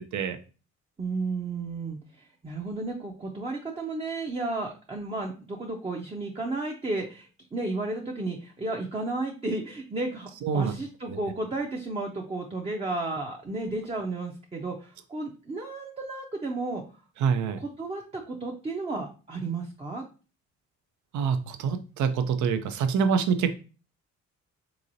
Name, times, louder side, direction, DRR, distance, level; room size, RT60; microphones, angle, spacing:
voice 1, 1.0-10.3 10.5-16.8 17.6-20.0, right 2 dB, 20° right, 1 dB, 0.5 m, -33 dB
voice 2, 10.4-10.7 11.1-11.2 17.2-17.6 21.1-23.6, right 6 dB, 75° right, 9 dB, 0.6 m, -26 dB
3.8 x 3.0 x 2.6 m, 0.35 s
cardioid pair, 90°, 30 cm